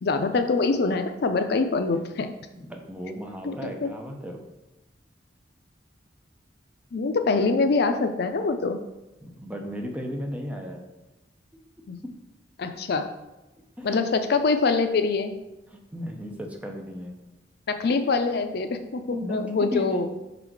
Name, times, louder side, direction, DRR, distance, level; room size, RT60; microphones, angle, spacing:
voice 1, 0.0-2.3 3.4-3.9 6.9-8.8 11.9-12.0 12.6-13.1 13.8-15.3 17.7-20.1, left 4 dB, 65° left, 8 dB, 0.5 m, -24 dB
voice 2, 2.5-4.4 9.2-10.9 12.0-12.2 13.8-14.0 15.7-17.1 19.1-20.1, equal, 10° right, 2 dB, 0.7 m, -35 dB
5.5 x 4.0 x 4.6 m, 1.0 s
head